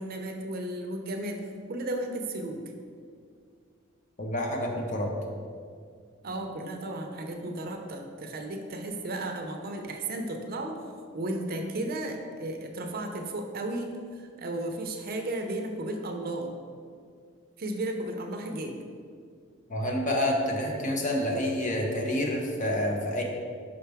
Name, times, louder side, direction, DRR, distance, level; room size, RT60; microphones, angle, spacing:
voice 1, 0.0-1.4 1.7-2.6 6.2-10.8 11.1-16.5 17.6-18.7, right 1 dB, 45° right, 3 dB, 0.5 m, -34 dB
voice 2, 4.2-5.1 19.7-23.2, left 1 dB, 40° left, 1 dB, 0.7 m, -28 dB
5.6 x 5.2 x 3.4 m, 2.1 s
head